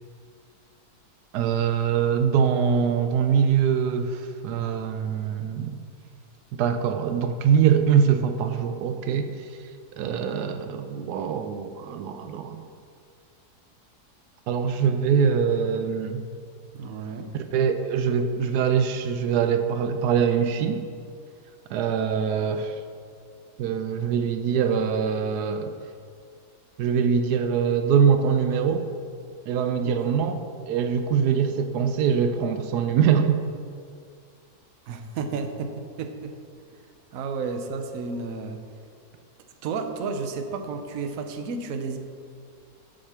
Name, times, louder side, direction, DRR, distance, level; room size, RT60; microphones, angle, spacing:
voice 1, 1.3-5.8 6.5-9.5 10.0-12.7 14.5-16.2 17.3-20.8 21.7-22.8 23.6-25.7 26.8-28.9 29.5-33.4, right 7 dB, 85° right, 8 dB, 1.1 m, -23 dB
voice 2, 16.7-17.3 29.8-30.3 34.9-36.4 37.1-38.6 39.6-42.0, right 4 dB, 65° right, 6 dB, 1.1 m, -32 dB
7.5 x 6.5 x 5.8 m, 2.3 s
omnidirectional pair, 1.7 m